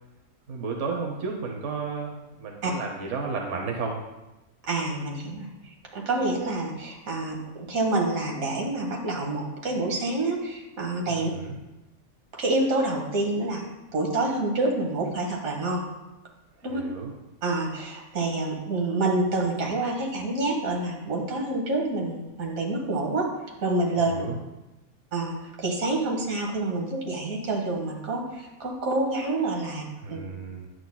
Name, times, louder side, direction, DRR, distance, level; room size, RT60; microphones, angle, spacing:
voice 1, 0.5-4.1 11.1-11.6 16.7-17.1 24.0-24.4 30.0-30.7, right 4 dB, 65° right, 1 dB, 1.2 m, -33 dB
voice 2, 4.7-5.5 5.9-11.3 12.3-13.6 13.9-15.8 16.6-16.8 17.4-23.3 23.6-24.2 25.1-29.8 30.1-30.2, right 2 dB, 85° right, 0 dB, 1.8 m, -27 dB
9.7 x 7.8 x 2.2 m, 1.0 s
omnidirectional pair, 1.4 m